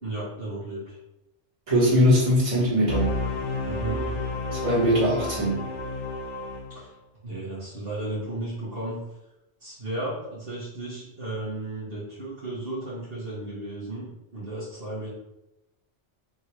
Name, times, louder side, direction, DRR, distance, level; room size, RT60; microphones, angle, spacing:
voice 1, 0.0-1.0 3.7-4.1 6.7-6.9 7.2-9.0 9.6-15.1, right 2 dB, 55° right, -9 dB, 1.5 m, -34 dB
voice 2, 1.7-3.2 4.5-5.6, equal, 25° right, -8 dB, 1.6 m, -21 dB
sound 1, 2.9-6.8, left 2 dB, 55° left, 0.7 m, -31 dB
3.8 x 2.7 x 4.5 m, 0.90 s
omnidirectional pair, 1.2 m